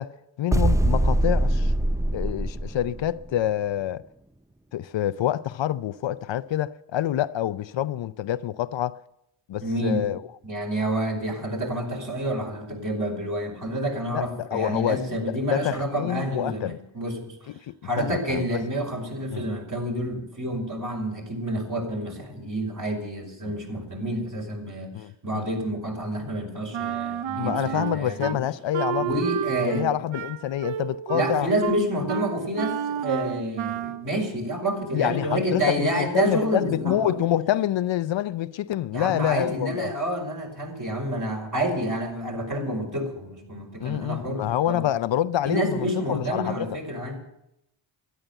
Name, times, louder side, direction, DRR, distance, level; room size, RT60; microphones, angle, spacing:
voice 1, 0.0-1.7 2.1-4.0 4.7-9.0 9.5-10.2 14.1-16.8 17.5-18.7 19.3-19.5 23.4-23.5 24.9-25.4 27.4-29.1 29.6-31.5 34.9-39.9 43.8-46.7, left 12 dB, 65° left, 0.6 m, -27 dB
sound 1, 0.5-3.2, right 1 dB, 5° right, 0.5 m, -23 dB
voice 2, 9.6-10.1 10.4-17.4 17.8-24.9 25.2-28.4 29.0-29.9 31.1-37.2 38.9-44.9 45.4-47.2, right 1 dB, 40° right, 5.4 m, -28 dB
Wind instrument woodwind instrument, 26.7-28.4 28.7-34.1, right 10 dB, 75° right, 0.9 m, -30 dB
13.0 x 11.0 x 8.0 m
cardioid pair, 70°, 49 cm